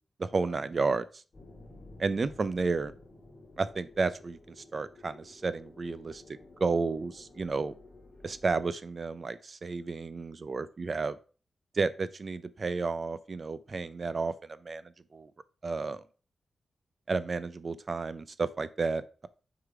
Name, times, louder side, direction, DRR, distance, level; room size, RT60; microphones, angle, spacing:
voice 1, 0.2-1.1 2.0-2.9 3.6-6.2 6.6-7.7 8.2-11.2 11.7-14.3 14.6-14.8 15.1-15.3 15.6-16.0 17.1-19.3, right 4 dB, 35° right, 15 dB, 0.5 m, -31 dB
sound 1, 1.3-8.6, left 2 dB, 30° left, 1.9 m, -53 dB
6.5 x 3.7 x 4.8 m, 0.37 s
wide cardioid pair, 160°, 0 cm